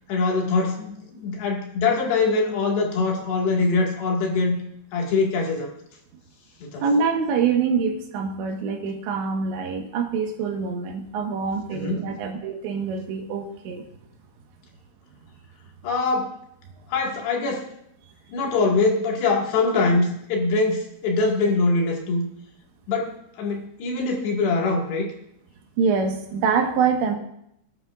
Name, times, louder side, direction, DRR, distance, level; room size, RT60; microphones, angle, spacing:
voice 1, 0.1-4.6 4.9-5.7 6.6-6.8 11.7-12.1 15.8-16.3 16.9-17.7 18.3-22.3 22.9-25.1, left 3 dB, 70° left, -1 dB, 4.1 m, -23 dB
voice 2, 6.8-13.8 25.8-27.2, right 5 dB, 90° right, 3 dB, 3.8 m, -25 dB
21.5 x 11.0 x 2.5 m, 0.76 s
omnidirectional pair, 5.0 m